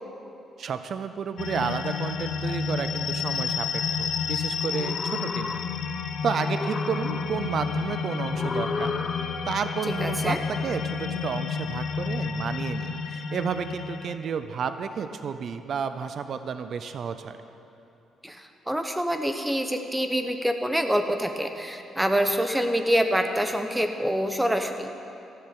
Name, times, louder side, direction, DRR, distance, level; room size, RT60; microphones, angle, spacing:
voice 1, 0.6-5.6 6.2-8.9 9.5-17.4, right 6 dB, 60° right, 10 dB, 0.6 m, -31 dB
sound 1, 1.4-14.2, left 5 dB, 70° left, 0.9 m, -30 dB
sound 2, 4.6-6.0 6.3-7.6 8.3-9.6, left 4 dB, 35° left, 0.7 m, -34 dB
voice 2, 10.0-10.4 18.2-25.0, equal, 5° right, 6 dB, 1.1 m, -26 dB
14.0 x 6.6 x 9.6 m, 2.9 s
cardioid pair, 90°, 0 cm